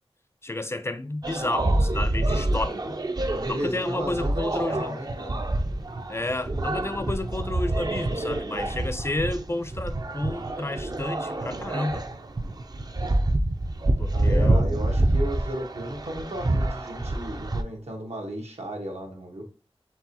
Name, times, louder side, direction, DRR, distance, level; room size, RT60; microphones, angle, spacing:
voice 1, 0.4-3.0 3.5-5.0 6.1-12.0 14.0-14.8, left 2 dB, 25° left, 0.5 m, -31 dB
sound 1, 1.2-17.6, right 1 dB, 40° right, 0.4 m, -27 dB
voice 2, 3.3-5.4 14.1-19.4, right 1 dB, 85° right, 1.2 m, -34 dB
4.6 x 3.5 x 2.8 m
wide cardioid pair, 45°, 11 cm